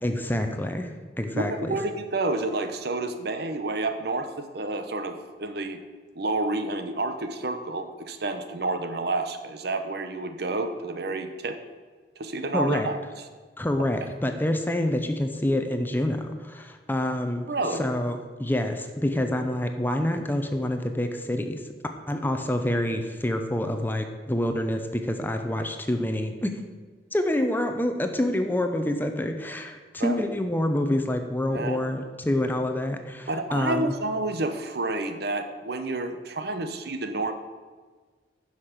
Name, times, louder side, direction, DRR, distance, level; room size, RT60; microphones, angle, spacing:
voice 1, 0.0-0.9 1.2-1.8 12.5-12.9 13.6-17.5 17.8-21.6 22.1-26.5 27.1-33.9, left 1 dB, 10° left, 6 dB, 0.7 m, -27 dB
voice 2, 1.3-5.8 6.1-11.6 12.2-13.0 17.5-17.8 30.0-30.2 31.5-31.8 33.3-37.3, right 2 dB, 60° right, 8 dB, 0.9 m, -29 dB
10.5 x 5.9 x 6.6 m, 1.4 s
head